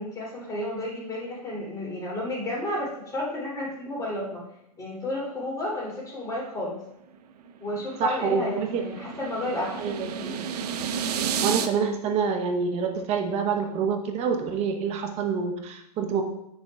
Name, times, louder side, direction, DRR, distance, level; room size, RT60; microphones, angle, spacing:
voice 1, 0.0-4.4 4.8-6.8 7.6-10.4, left 1 dB, 15° left, -6 dB, 2.9 m, -32 dB
sound 1, 7.4-11.7, right 7 dB, 75° right, 0.7 m, -31 dB
voice 2, 8.0-8.8 9.8-10.1 11.4-16.2, right 6 dB, 30° right, 4 dB, 1.0 m, -27 dB
8.8 x 6.6 x 2.3 m, 0.83 s
hypercardioid pair, 140°, 20 cm